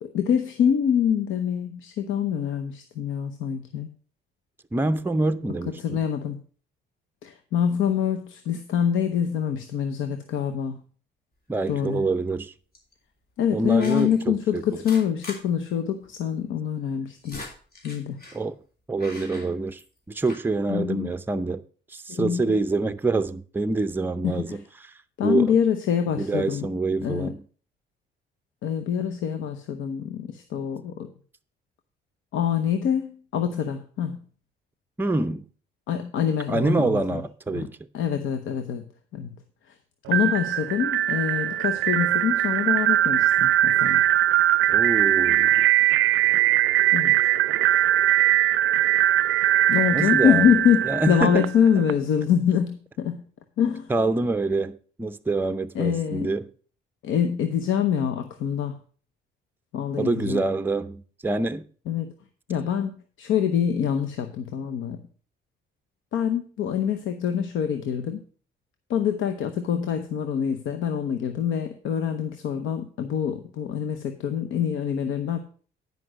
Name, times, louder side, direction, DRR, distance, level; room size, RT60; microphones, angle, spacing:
voice 1, 0.0-3.9 5.8-6.4 7.2-10.8 11.7-12.0 13.4-17.4 17.8-18.2 20.7-21.1 22.1-22.6 24.2-24.6 25.2-26.7 27.0-27.3 28.6-31.1 32.3-34.2 35.9-37.2 37.5-37.7 37.9-38.8 39.1-39.3 40.1-44.0 46.9-47.2 49.7-53.2 53.6-53.9 55.7-56.3 57.0-58.7 59.7-60.4 61.9-62.1 62.5-65.0 66.1-68.2 68.9-75.4, left 8 dB, 85° left, 0.9 m, -25 dB
voice 2, 4.7-6.1 11.5-12.5 13.5-14.6 18.3-18.6 18.9-19.8 20.1-21.6 21.9-24.9 25.2-25.6 26.2-27.4 35.0-35.5 36.5-37.8 44.7-45.7 49.9-50.5 50.9-51.5 51.7-51.8 53.9-56.5 60.0-61.7, right 2 dB, 10° right, 0.5 m, -26 dB
sound 1, 11.6-12.0 12.7-12.9 13.8-14.2 14.7-15.4 15.7-15.8 16.0-16.1 16.9-18.4 19.0-20.0 20.2-20.5, left 2 dB, 50° left, 3.3 m, -42 dB
sound 2, 40.1-51.9, right 13 dB, 80° right, 0.4 m, -21 dB
9.9 x 5.3 x 6.1 m
cardioid pair, 90°, 20 cm